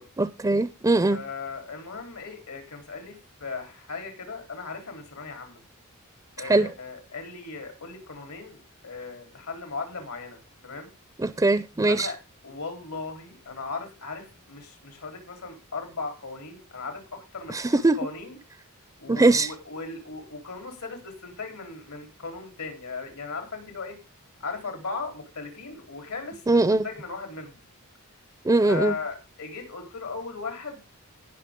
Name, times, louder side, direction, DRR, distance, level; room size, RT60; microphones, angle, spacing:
voice 1, 0.2-1.2 6.5-6.7 11.2-12.1 17.5-18.0 19.1-19.5 26.5-26.8 28.4-28.9, right 2 dB, 15° right, 14 dB, 0.5 m, -21 dB
voice 2, 1.1-5.6 6.4-10.9 11.9-12.2 12.4-18.4 19.0-24.0 24.4-26.4 26.8-27.6 28.6-30.8, left 4 dB, 85° left, 5 dB, 3.7 m, -37 dB
19.0 x 6.3 x 3.6 m, 0.26 s
head